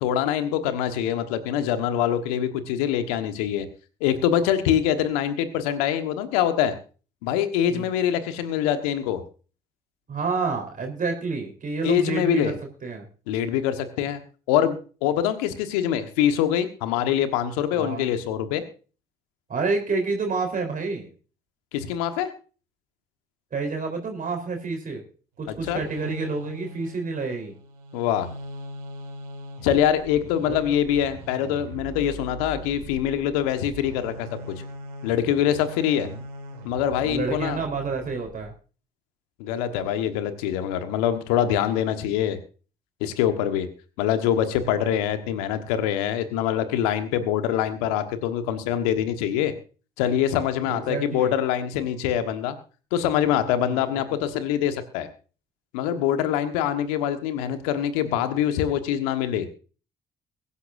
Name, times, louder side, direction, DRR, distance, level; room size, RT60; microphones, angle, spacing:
voice 1, 0.0-3.7 4.0-6.7 7.2-9.2 11.8-12.5 13.3-14.2 14.5-18.6 21.7-22.3 25.6-25.8 27.9-28.3 29.6-34.3 35.0-36.1 36.6-37.6 39.4-42.4 43.0-43.7 44.0-49.5 50.0-52.6 52.9-55.1 55.7-59.5, left 10 dB, 80° left, 9 dB, 1.4 m, -24 dB
voice 2, 10.1-12.6 12.8-13.1 17.7-18.1 19.5-21.1 23.5-25.0 25.4-27.5 30.5-30.6 36.0-36.2 37.0-38.5 50.7-51.3 53.7-54.0, right 4 dB, 45° right, 3 dB, 3.8 m, -29 dB
sound 1, 25.4-38.5, right 1 dB, 80° right, 2.1 m, -41 dB
22.5 x 11.5 x 2.6 m, 0.37 s
hypercardioid pair, 45°, 19 cm